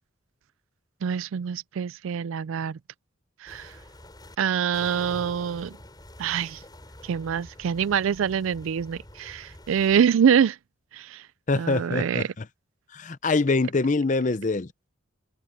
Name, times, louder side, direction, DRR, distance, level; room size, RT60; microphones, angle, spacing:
voice 1, 1.0-2.8 3.4-3.7 4.4-5.7 6.2-6.6 7.0-10.6 10.9-11.2 11.6-12.3, right 7 dB, 80° right, 0.4 m, -25 dB
sound 1, 3.5-4.4 4.7-10.1, left 1 dB, 20° left, 7.7 m, -47 dB
voice 2, 11.5-12.5 12.9-14.7, left 3 dB, 40° left, 0.6 m, -24 dB
head